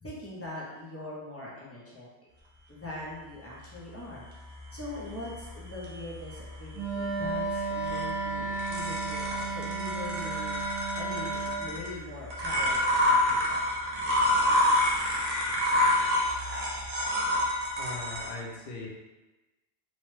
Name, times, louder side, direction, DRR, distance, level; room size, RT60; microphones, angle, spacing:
voice 1, 0.0-2.1 2.7-4.2 4.7-10.6 11.0-13.6, left 2 dB, 20° left, -6 dB, 0.4 m, -42 dB
sound 1, 3.6-18.3, left 1 dB, 50° right, 0.5 m, -29 dB
Wind instrument woodwind instrument, 6.7-11.6, right 3 dB, 85° right, 0.9 m, -33 dB
voice 2, 17.8-18.9, left 3 dB, 60° left, -2 dB, 0.8 m, -39 dB
2.9 x 2.1 x 3.1 m, 1.1 s
omnidirectional pair, 1.2 m